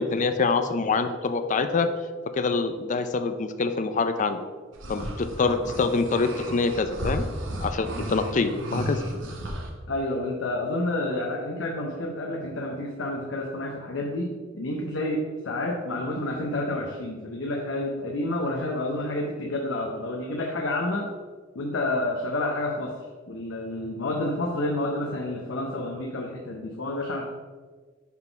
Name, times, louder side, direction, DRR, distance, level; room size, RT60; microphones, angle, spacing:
voice 1, 0.0-1.9 2.3-4.4 4.9-7.2 7.6-9.0, left 4 dB, 40° left, 9 dB, 0.4 m, -25 dB
sound 1, 4.7-9.7, right 1 dB, 75° right, 0.9 m, -33 dB
voice 2, 9.9-21.1 21.5-22.9 23.3-27.2, left 1 dB, 85° left, -1 dB, 0.8 m, -29 dB
5.8 x 4.0 x 4.5 m, 1.5 s
head